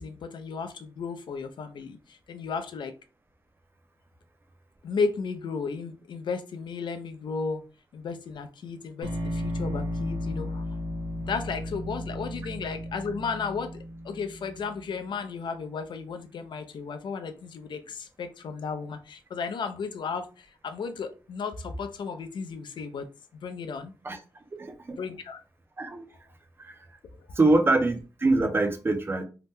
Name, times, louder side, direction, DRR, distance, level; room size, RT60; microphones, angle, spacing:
voice 1, 0.0-3.0 4.8-7.6 7.9-10.6 11.2-23.1 23.4-23.9 25.0-25.4, left 5 dB, 80° left, 0.4 m, -34 dB
sound 1, 9.0-15.0, equal, 85° right, 0.7 m, -34 dB
voice 2, 24.5-25.0 25.8-26.1 26.6-26.9 27.4-29.2, right 2 dB, 30° right, 0.4 m, -24 dB
2.8 x 2.1 x 3.4 m
wide cardioid pair, 135°, 8 cm